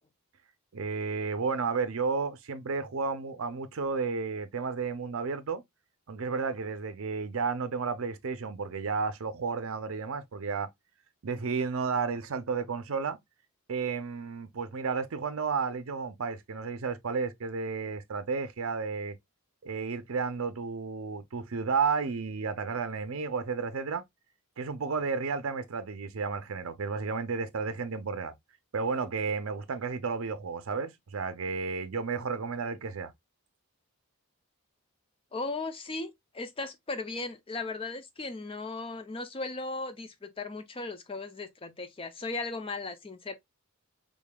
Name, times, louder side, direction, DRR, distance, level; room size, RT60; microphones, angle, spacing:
voice 1, 0.7-5.6 6.1-10.7 11.2-13.2 13.7-19.2 19.6-24.0 24.6-28.3 28.7-33.1, right 5 dB, 65° right, 0.5 m, -32 dB
voice 2, 35.3-43.3, left 3 dB, 25° left, 0.5 m, -37 dB
3.7 x 3.5 x 2.2 m
head